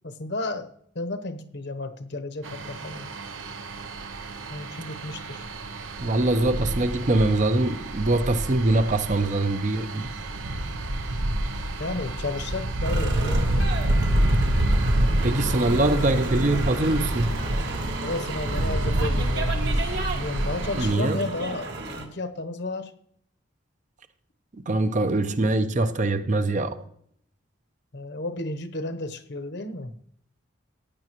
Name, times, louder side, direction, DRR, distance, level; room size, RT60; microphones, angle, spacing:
voice 1, 0.0-3.1 4.5-5.4 11.8-13.5 18.0-22.9 27.9-29.9, left 2 dB, 60° left, 0.9 m, -33 dB
sound 1, 2.4-20.9, right 1 dB, 90° right, 0.9 m, -27 dB
voice 2, 6.0-10.1 15.2-17.3 20.8-21.2 24.6-26.8, right 2 dB, 40° right, 0.6 m, -23 dB
sound 2, 12.8-22.0, right 2 dB, 60° right, 1.8 m, -33 dB
15.5 x 9.5 x 3.0 m
head